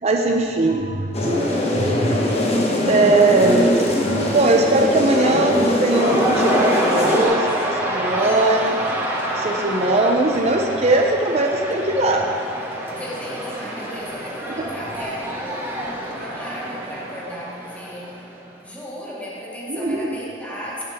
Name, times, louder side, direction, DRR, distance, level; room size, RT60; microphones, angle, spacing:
voice 1, 0.0-2.2 2.9-8.8 9.3-12.3 19.7-20.1, right 2 dB, 35° right, 1 dB, 0.6 m, -20 dB
sound 1, 1.1-7.3, left 1 dB, 35° left, 1.3 m, -21 dB
Cheering / Crowd, 1.7-18.5, right 1 dB, 15° right, 1.0 m, -28 dB
voice 2, 13.0-18.3 18.6-20.8, equal, 10° left, -6 dB, 1.9 m, -35 dB
16.5 x 7.4 x 3.6 m, 2.4 s
head